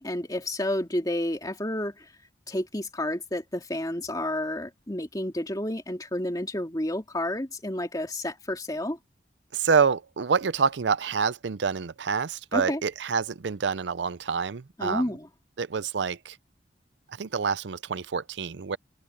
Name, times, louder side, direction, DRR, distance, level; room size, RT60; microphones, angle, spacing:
voice 1, 0.0-2.1 2.5-9.0 12.5-12.8 14.8-15.3, left 1 dB, 20° left, 2.5 m, -30 dB
voice 2, 9.5-15.0 15.6-16.4 17.2-18.8, right 5 dB, 75° right, 0.5 m, -27 dB
head